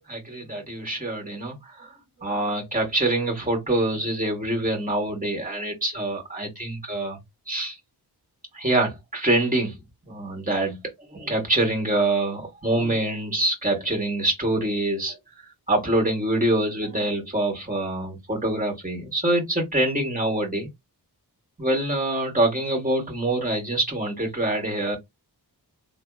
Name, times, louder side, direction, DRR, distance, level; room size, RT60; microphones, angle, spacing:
voice 1, 0.1-1.9 2.2-7.2 7.5-7.8 8.5-9.7 10.1-10.8 11.1-15.2 15.7-20.7 21.6-25.0, right 1 dB, 20° right, 1.7 m, -25 dB
3.2 x 2.1 x 3.5 m
wide cardioid pair, 95°, 40 cm